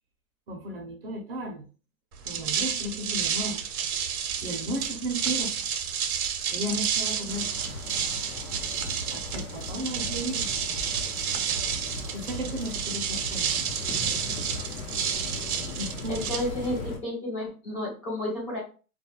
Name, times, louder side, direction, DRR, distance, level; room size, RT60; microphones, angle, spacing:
voice 1, 0.5-1.7 2.2-3.7 3.9-4.0 4.4-5.6 6.5-7.5 9.1-10.5 12.1-13.5 15.8-16.2, equal, 45° right, 2 dB, 0.5 m, -34 dB
sound 1, 2.1-17.0, right 8 dB, 80° right, 0.7 m, -30 dB
sound 2, 7.3-17.0, left 3 dB, 70° left, 0.9 m, -38 dB
voice 2, 16.1-18.6, left 1 dB, 25° left, -5 dB, 0.5 m, -31 dB
2.3 x 2.1 x 2.8 m, 0.36 s
hypercardioid pair, 170°, 44 cm